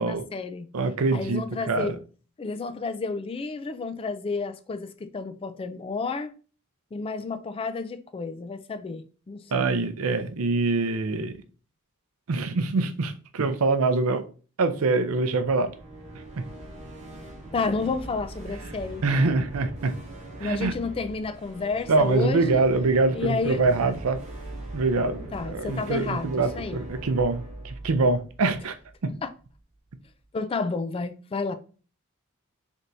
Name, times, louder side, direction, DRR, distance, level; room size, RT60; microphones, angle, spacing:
voice 1, 0.0-0.7 1.1-1.9 2.4-6.3 6.9-9.7 17.5-19.5 20.4-22.6 23.1-23.6 25.1-26.8 29.2-29.3 30.3-31.5, left 4 dB, 25° left, 0.3 m, -31 dB
voice 2, 0.7-1.9 9.5-11.4 12.3-14.2 14.6-15.7 16.4-16.5 19.0-20.0 20.4-20.7 21.9-24.2 24.7-28.7 29.0-29.1, right 3 dB, 75° right, 0.5 m, -24 dB
sound 1, 15.3-29.2, right 1 dB, 35° right, 0.9 m, -41 dB
4.2 x 3.4 x 2.6 m
head